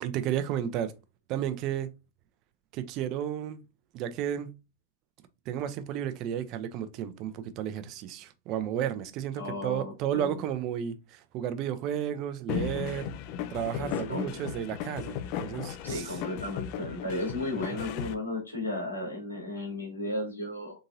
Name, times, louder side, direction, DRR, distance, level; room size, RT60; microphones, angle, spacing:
voice 1, 0.0-0.9 1.3-1.9 2.7-3.6 3.9-4.5 5.5-13.2 13.5-16.2 17.7-17.8, right 10 dB, 40° right, 0.5 m, -33 dB
voice 2, 9.4-10.4 13.8-14.3 15.8-20.8, left 2 dB, 85° left, 2.1 m, -34 dB
sound 1, 12.5-18.1, left 9 dB, 45° left, 0.4 m, -36 dB
3.9 x 3.7 x 2.7 m
figure-of-eight pair, 90°, 0 cm